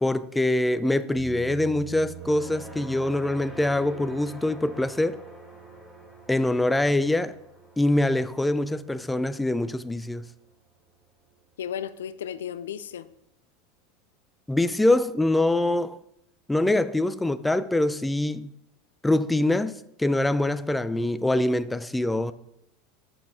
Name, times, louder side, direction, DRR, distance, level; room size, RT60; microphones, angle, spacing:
voice 1, 0.0-5.2 6.3-7.4 7.8-10.2 14.5-16.0 16.5-18.5 19.0-19.7 20.0-22.3, left 1 dB, 10° left, 0.4 m, -24 dB
sound 1, 1.1-9.2, right 11 dB, 80° right, 1.8 m, -47 dB
sound 2, 2.0-10.4, equal, 10° right, 1.6 m, -47 dB
voice 2, 11.6-13.1, left 9 dB, 80° left, 0.3 m, -34 dB
6.7 x 5.9 x 3.7 m
hypercardioid pair, 90°, 0 cm